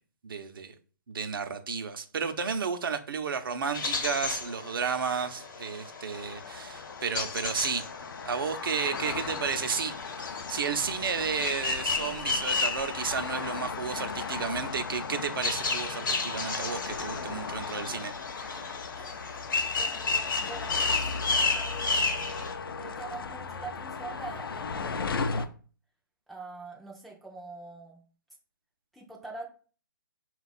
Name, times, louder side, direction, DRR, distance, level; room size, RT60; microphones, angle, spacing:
voice 1, 0.2-0.7 1.1-7.8 8.2-9.9 10.2-18.1 18.9-19.1, right 6 dB, 75° right, 0.6 m, -32 dB
sound 1, 3.7-22.5, left 4 dB, 65° left, 0.9 m, -33 dB
sound 2, 6.1-25.5, left 5 dB, 85° left, 0.4 m, -37 dB
voice 2, 18.9-19.3 19.8-21.0 21.5-22.4 22.6-25.5 26.3-28.0 28.9-29.5, right 3 dB, ahead, 0.3 m, -44 dB
4.2 x 2.3 x 3.9 m
hypercardioid pair, 155°, 12 cm